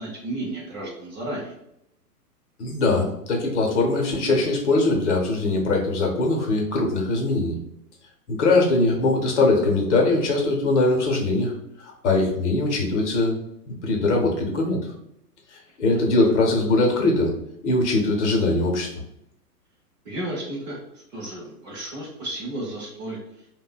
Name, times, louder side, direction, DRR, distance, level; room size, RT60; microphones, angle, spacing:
voice 1, 0.0-1.6 20.0-20.8 21.1-23.2, right 1 dB, 30° right, -4 dB, 0.6 m, -33 dB
voice 2, 2.6-7.6 8.3-11.5 11.8-13.4 13.7-14.8 15.5-17.3 17.6-18.9, left 2 dB, 45° left, 0 dB, 0.7 m, -21 dB
2.6 x 2.1 x 2.3 m, 0.79 s
figure-of-eight pair, 115°, 48 cm